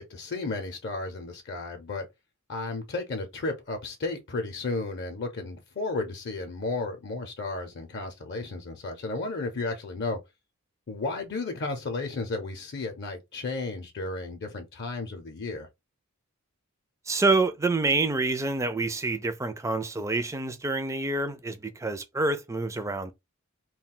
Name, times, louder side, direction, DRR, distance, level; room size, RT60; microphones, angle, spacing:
voice 1, 0.0-2.1 2.5-10.2 10.9-15.7, left 3 dB, 55° left, 0.6 m, -33 dB
voice 2, 17.1-23.1, right 3 dB, 15° right, 0.3 m, -27 dB
2.3 x 2.2 x 3.6 m
head